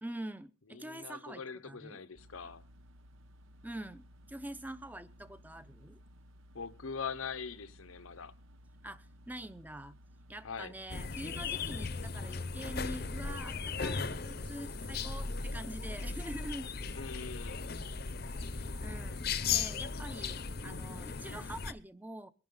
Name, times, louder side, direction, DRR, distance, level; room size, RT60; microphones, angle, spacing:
voice 1, 0.0-2.0 3.6-6.0 8.8-10.0 10.3-16.7 18.3-22.3, right 1 dB, 10° right, 0.7 m, -45 dB
voice 2, 0.7-2.6 6.5-8.3 10.4-10.7 16.9-17.7, left 5 dB, 90° left, 1.0 m, -42 dB
sound 1, 2.2-19.4, equal, 75° right, 1.1 m, -58 dB
sound 2, 10.9-21.7, left 5 dB, 50° left, 0.8 m, -37 dB
22.5 x 10.5 x 3.9 m
head